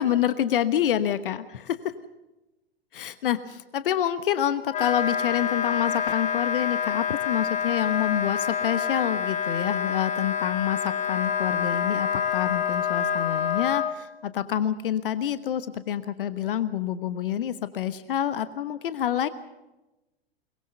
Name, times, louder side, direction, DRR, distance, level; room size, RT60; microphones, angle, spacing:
voice 1, 0.0-1.9 2.9-19.3, left 10 dB, 60° left, 13 dB, 1.2 m, -27 dB
Wind instrument woodwind instrument, 4.7-13.9, left 8 dB, 25° left, 1.5 m, -27 dB
22.5 x 22.0 x 6.7 m, 1.0 s
figure-of-eight pair, 100°, 31 cm